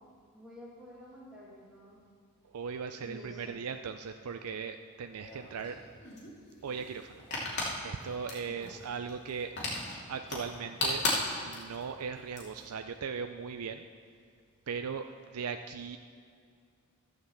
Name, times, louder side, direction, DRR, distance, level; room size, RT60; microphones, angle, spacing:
voice 1, 0.0-2.0 2.9-3.6 8.5-8.8, equal, 5° right, -7 dB, 2.2 m, -50 dB
voice 2, 2.5-5.8 6.6-7.2 7.8-9.5 10.1-11.1 11.4-13.8 14.7-16.0, right 6 dB, 80° right, 7 dB, 0.4 m, -38 dB
sound 1, 5.2-12.6, left 2 dB, 50° left, 2.5 m, -36 dB
13.0 x 5.9 x 7.1 m, 2.3 s
head